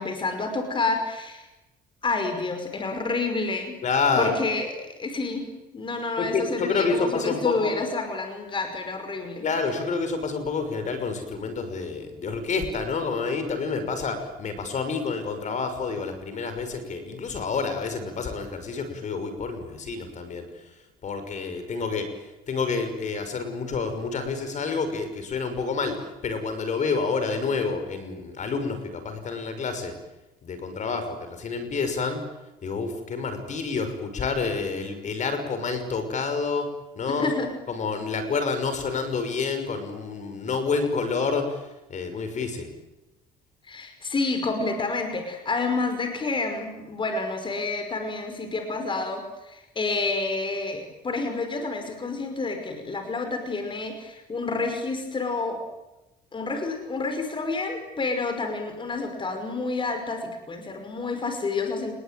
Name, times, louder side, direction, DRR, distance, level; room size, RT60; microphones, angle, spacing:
voice 1, 0.0-1.5 2.0-3.8 4.2-5.5 5.7-9.5 37.2-37.5 43.6-55.6 56.3-61.9, left 3 dB, 30° left, 6 dB, 5.5 m, -29 dB
voice 2, 3.8-4.4 6.2-7.7 9.4-20.5 21.0-22.1 22.5-29.9 30.4-32.2 32.6-37.3 37.7-42.7, left 4 dB, 45° left, 9 dB, 6.0 m, -28 dB
30.0 x 21.0 x 9.3 m, 0.99 s
cardioid pair, 110°, 17 cm